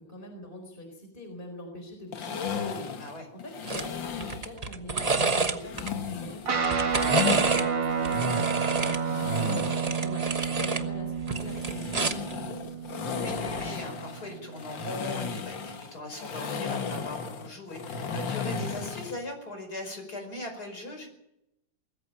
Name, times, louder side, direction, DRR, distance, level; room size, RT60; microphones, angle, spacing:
voice 1, 0.1-9.0 9.2-12.6, left 1 dB, 25° left, 4 dB, 4.5 m, -43 dB
sound 1, 2.1-4.5 5.6-7.4 7.9-9.9 11.3-19.2, left 5 dB, 85° left, 2.3 m, -34 dB
sound 2, 3.7-3.9 4.2-5.9 6.5-7.7 8.0-10.8 11.2-12.3 13.5-13.7, right 3 dB, 25° right, 1.1 m, -29 dB
Guitar, 6.5-15.2, right 6 dB, 75° right, 2.7 m, -31 dB
voice 2, 13.2-21.1, left 1 dB, 55° left, 4 dB, 5.7 m, -39 dB
20.5 x 14.5 x 9.0 m, 0.84 s
omnidirectional pair, 2.0 m